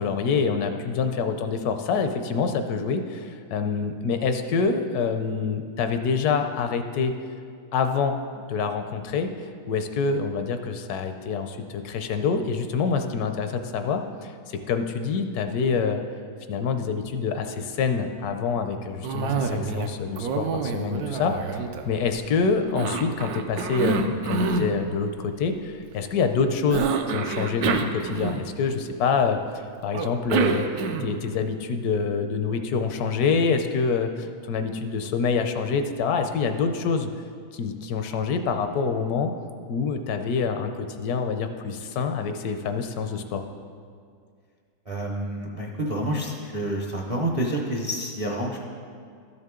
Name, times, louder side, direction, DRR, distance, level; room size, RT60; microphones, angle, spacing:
voice 1, 0.0-7.1 7.7-8.2 8.5-16.0 16.5-29.4 29.8-30.7 31.0-37.1 37.5-39.3 39.7-43.4, left 5 dB, 80° left, 7 dB, 1.1 m, -26 dB
Cough, 19.0-19.9 20.2-22.2 22.8-24.7 26.7-28.7 29.9-31.2, right 5 dB, 80° right, 1.1 m, -27 dB
voice 2, 44.9-48.6, right 1 dB, 40° right, -1 dB, 0.5 m, -28 dB
12.5 x 6.6 x 3.7 m, 2.2 s
omnidirectional pair, 1.7 m